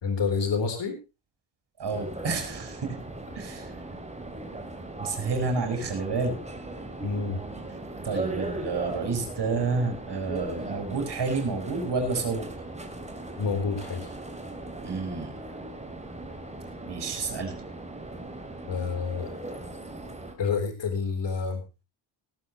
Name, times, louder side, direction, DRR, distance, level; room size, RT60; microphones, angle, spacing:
voice 1, 0.0-1.0 7.0-7.4 13.4-14.1 18.7-19.3 20.4-21.6, left 5 dB, 65° left, 6 dB, 4.0 m, -28 dB
voice 2, 1.8-3.0 3.3-3.7 5.0-6.4 8.0-12.5 14.8-15.4 16.9-17.5, right 4 dB, 55° right, 5 dB, 5.7 m, -29 dB
sound 1, 1.9-20.3, right 2 dB, 15° right, 3.0 m, -38 dB
18.5 x 12.5 x 3.1 m, 0.28 s
wide cardioid pair, 150°, 47 cm